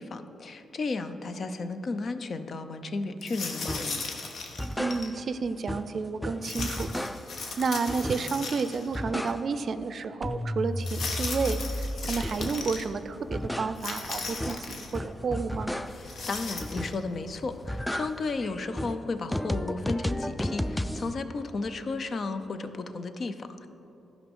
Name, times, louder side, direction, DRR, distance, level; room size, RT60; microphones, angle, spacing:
voice 1, 0.0-4.0 15.9-23.7, left 3 dB, 50° left, 9 dB, 0.5 m, -34 dB
sound 1, 3.2-5.1 6.4-9.0 9.3-9.4 10.8-12.9 13.8-15.0 15.9-16.9, left 4 dB, 70° left, 1.0 m, -37 dB
sound 2, 3.7-4.0 4.4-5.4 5.7-7.5 7.9-8.5 8.8-9.7 10.0-12.8 13.1-16.2 16.6-17.2 17.5-21.1, left 1 dB, 5° left, 0.3 m, -34 dB
voice 2, 4.8-7.1 7.6-15.7, right 5 dB, 55° right, 12 dB, 0.4 m, -31 dB
sound 3, 10.6-18.3, equal, 35° left, 1.2 m, -51 dB
12.0 x 5.1 x 5.4 m, 3.0 s
cardioid pair, 75°, 0 cm